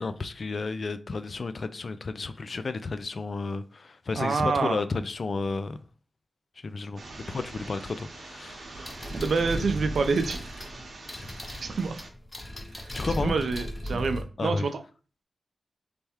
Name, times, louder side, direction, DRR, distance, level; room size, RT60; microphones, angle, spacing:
voice 1, 0.0-5.8 6.6-7.0 7.3-9.0 12.9-13.3 14.4-14.7, left 3 dB, 50° left, 0.4 m, -32 dB
voice 2, 4.1-4.8 9.1-10.4 11.6-11.9 12.7-12.9 13.2-14.8, right 4 dB, 80° right, 0.6 m, -27 dB
sound 1, 7.0-12.1, right 2 dB, 60° right, 0.9 m, -44 dB
sound 2, 8.8-14.2, equal, 20° left, 0.7 m, -36 dB
3.4 x 3.4 x 4.4 m
wide cardioid pair, 130°, 0 cm